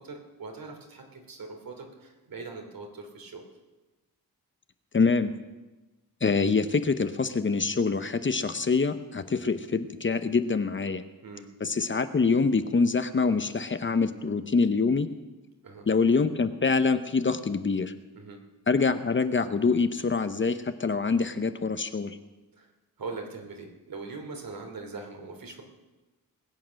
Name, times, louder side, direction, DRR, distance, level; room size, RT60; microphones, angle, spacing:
voice 1, 0.0-3.4 11.2-11.5 15.6-15.9 18.1-18.4 22.5-22.7 23.0-25.6, right 3 dB, 70° right, 3 dB, 2.9 m, -41 dB
voice 2, 4.9-5.3 6.2-11.0 11.6-15.1 15.9-17.9 18.7-22.2, left 4 dB, 35° left, 10 dB, 0.7 m, -25 dB
20.5 x 8.5 x 6.4 m, 1.1 s
wide cardioid pair, 115°, 36 cm